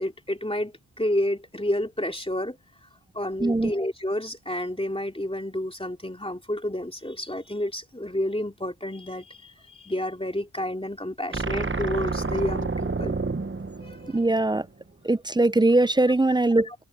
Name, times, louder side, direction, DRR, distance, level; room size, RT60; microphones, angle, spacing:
voice 1, 0.0-2.6 3.1-13.2 13.8-14.2 16.6-16.7, left 1 dB, 15° left, 2.8 m, -30 dB
voice 2, 3.4-3.7 14.1-14.7 15.0-16.7, right 2 dB, 10° right, 0.4 m, -21 dB
sound 1, 11.3-14.7, right 3 dB, 30° right, 0.9 m, -29 dB
open air
wide cardioid pair, 45°, 42 cm